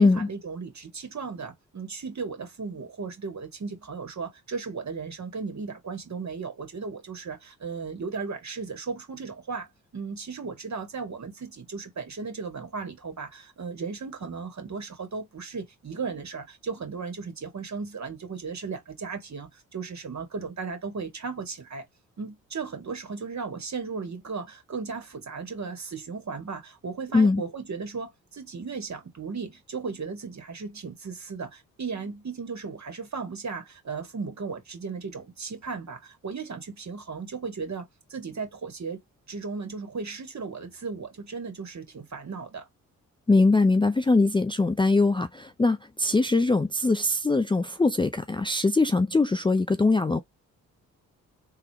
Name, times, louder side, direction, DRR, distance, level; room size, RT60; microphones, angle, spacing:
voice 1, 0.0-9.7 9.9-21.8 22.2-39.0 39.3-42.7, right 5 dB, 45° right, 2.2 m, -36 dB
voice 2, 43.3-50.2, left 3 dB, 15° left, 0.5 m, -22 dB
3.6 x 3.3 x 3.0 m
hypercardioid pair, 40°, 38 cm